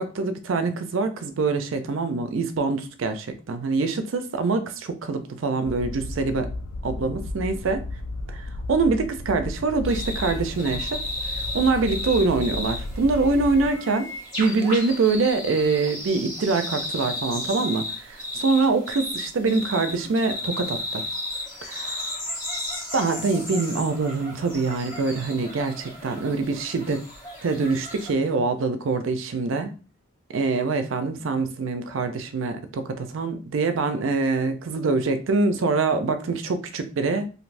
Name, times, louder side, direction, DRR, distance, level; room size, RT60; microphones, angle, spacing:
voice 1, 0.0-6.5 6.8-7.8 8.3-11.0 11.5-14.1 14.4-21.0 21.6-21.8 22.9-27.1 27.4-29.7 30.3-37.3, right 3 dB, 75° right, 9 dB, 0.4 m, -24 dB
sound 1, 5.6-13.7, left 2 dB, 85° left, 0.4 m, -34 dB
sound 2, 9.8-28.1, left 1 dB, 35° left, 1.6 m, -34 dB
3.2 x 2.6 x 2.5 m, 0.35 s
head